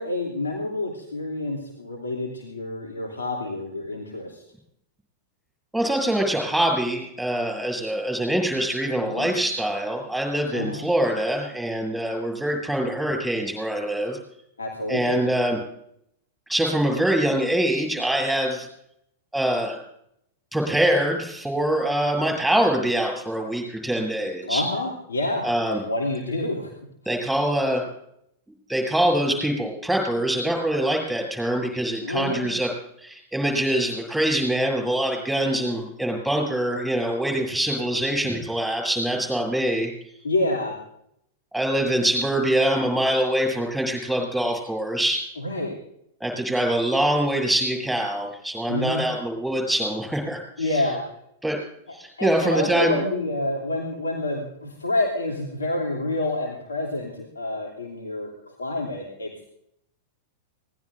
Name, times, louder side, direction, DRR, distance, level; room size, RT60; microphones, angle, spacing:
voice 1, 0.0-4.4 9.1-9.4 10.5-10.9 14.6-15.2 24.4-26.7 27.0-27.2 32.0-32.5 40.2-40.8 45.4-45.8 48.7-49.1 50.6-51.1 52.2-59.4, left 2 dB, 80° left, -1 dB, 2.8 m, -28 dB
voice 2, 5.7-14.2 14.9-15.6 16.5-18.7 19.3-19.8 20.5-24.6 25.4-25.8 27.1-27.9 28.7-32.7 33.0-39.9 41.5-45.2 46.2-50.9 51.4-51.6 51.9-53.0, right 1 dB, ahead, 1 dB, 8.0 m, -24 dB
25.0 x 19.5 x 2.6 m, 0.74 s
figure-of-eight pair, 95°, 0 cm